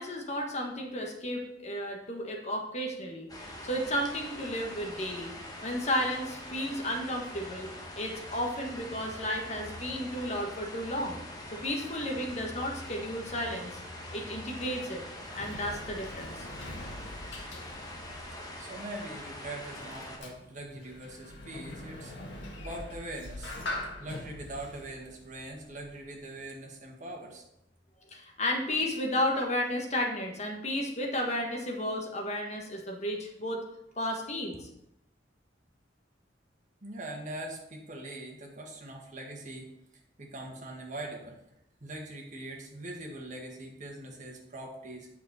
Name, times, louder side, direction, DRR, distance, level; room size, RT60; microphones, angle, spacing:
voice 1, 0.0-5.3 5.6-11.2 11.6-13.8 14.1-15.1 15.3-16.5 28.1-33.6 34.0-34.7, left 1 dB, 40° left, 1 dB, 1.5 m, -33 dB
sound 1, 3.3-20.2, left 1 dB, 20° left, 1.3 m, -43 dB
Sliding door, 14.9-26.2, left 1 dB, 90° left, 1.7 m, -44 dB
voice 2, 18.6-22.3 22.6-23.6 24.0-27.4 36.8-39.7 40.2-41.4 41.8-45.1, right 1 dB, 45° right, 0 dB, 1.7 m, -42 dB
8.2 x 6.3 x 4.2 m, 0.81 s
head